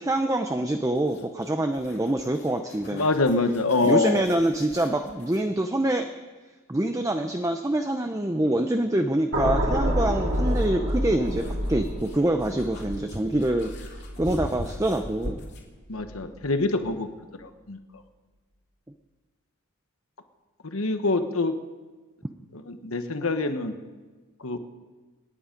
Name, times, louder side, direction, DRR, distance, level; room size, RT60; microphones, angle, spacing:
voice 1, 0.0-3.1 3.8-6.1 6.7-11.4 11.7-13.7 14.2-15.4, right 1 dB, 15° right, 6 dB, 0.6 m, -25 dB
sound 1, 0.9-5.5 7.8-7.9 9.9-15.7, left 1 dB, 50° left, 2.7 m, -41 dB
voice 2, 2.9-4.2 15.9-17.1 17.4-17.8 20.6-21.5 22.5-23.7 24.4-24.6, left 3 dB, 70° left, 8 dB, 1.2 m, -25 dB
sound 2, 9.3-15.6 16.0-16.3, equal, 60° right, 3.2 m, -29 dB
26.0 x 10.0 x 5.2 m, 1.3 s
head